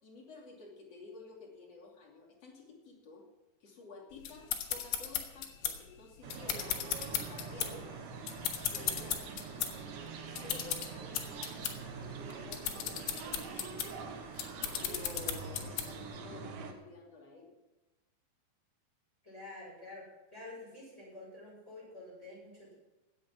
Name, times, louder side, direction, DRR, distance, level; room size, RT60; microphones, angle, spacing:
voice 1, 0.0-3.2 3.6-7.9 8.7-9.2 9.6-14.3 14.8-17.5, left 3 dB, 40° left, -1 dB, 3.1 m, -52 dB
sound 1, 4.2-16.1, left 10 dB, 90° left, 3.7 m, -37 dB
sound 2, 6.2-16.7, right 5 dB, 80° right, 3.7 m, -44 dB
voice 2, 8.7-9.1 19.2-20.0 20.3-22.7, left 2 dB, 15° left, -6 dB, 7.0 m, -49 dB
16.5 x 9.9 x 6.1 m, 1.1 s
omnidirectional pair, 5.2 m